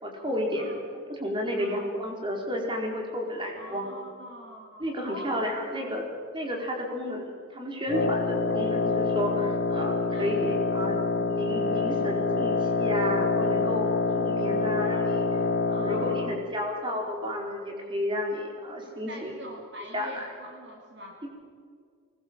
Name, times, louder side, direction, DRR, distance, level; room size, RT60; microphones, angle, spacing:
voice 1, 0.0-0.7 1.1-3.9 4.8-6.0 6.3-13.9 14.1-15.3 15.7-19.3 19.9-20.2 21.2-21.3, equal, 20° right, 1 dB, 4.2 m, -32 dB
voice 2, 1.5-1.9 3.5-5.5 5.8-5.9 10.1-10.4 10.8-10.9 15.7-16.4 18.8-21.2, equal, 50° right, 0 dB, 2.4 m, -44 dB
Wind instrument woodwind instrument, 7.9-16.4, left 4 dB, 55° left, 1.8 m, -26 dB
24.0 x 20.0 x 7.6 m, 2.1 s
head